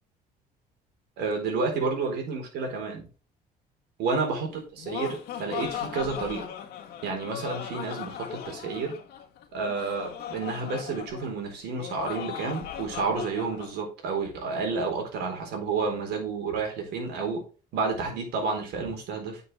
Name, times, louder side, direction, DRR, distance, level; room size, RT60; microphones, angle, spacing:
voice 1, 1.2-3.1 4.0-6.5 7.0-8.9 9.5-17.4 17.7-19.4, right 4 dB, 80° right, 2 dB, 4.1 m, -30 dB
Laughter, 4.5-13.7, left 10 dB, 75° left, 1.7 m, -38 dB
9.4 x 5.9 x 3.6 m, 0.34 s
cardioid pair, 110°, 17 cm